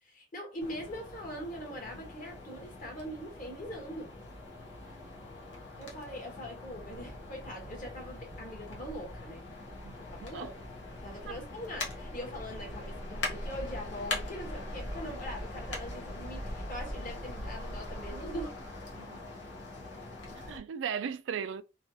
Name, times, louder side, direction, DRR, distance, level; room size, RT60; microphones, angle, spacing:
voice 1, 0.0-4.1 4.8-5.0 5.8-9.4 10.1-10.5 11.0-18.5, equal, 45° left, 1.2 m, -42 dB
sound 1, 0.6-20.6, left 2 dB, 85° left, 1.0 m, -42 dB
sound 2, 6.6-17.4, equal, 20° left, 0.9 m, -53 dB
voice 2, 20.3-21.6, right 7 dB, 85° right, 0.3 m, -37 dB
3.1 x 2.3 x 2.7 m
head